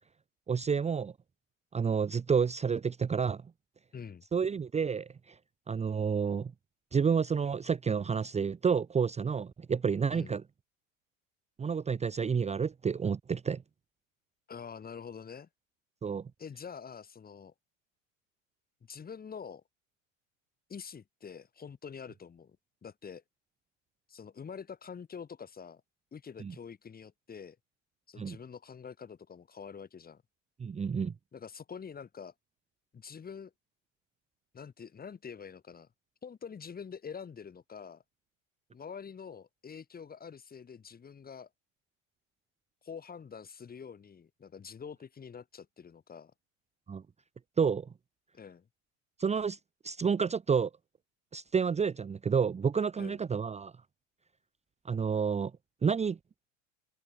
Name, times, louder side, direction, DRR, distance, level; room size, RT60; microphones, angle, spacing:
voice 1, 0.5-1.1 1.7-3.4 4.3-5.4 5.7-6.5 6.9-10.4 11.6-13.6 16.0-16.3 26.4-26.5 28.2-28.4 30.6-31.1 46.9-47.0 47.6-47.9 49.2-49.6 49.8-50.7 51.3-53.7 54.8-55.5 55.8-56.2, right 6 dB, 15° right, 1.1 m, -29 dB
voice 2, 3.9-4.2 10.1-10.3 14.5-15.5 16.4-17.5 18.8-19.6 20.7-22.6 22.8-23.2 24.1-25.8 26.1-27.6 28.1-30.2 31.3-32.3 32.9-33.5 34.5-35.9 36.2-38.0 38.7-41.5 42.8-46.3 48.3-48.7 53.0-53.2, left 6 dB, 25° left, 3.5 m, -46 dB
supercardioid pair, 105°, 38 cm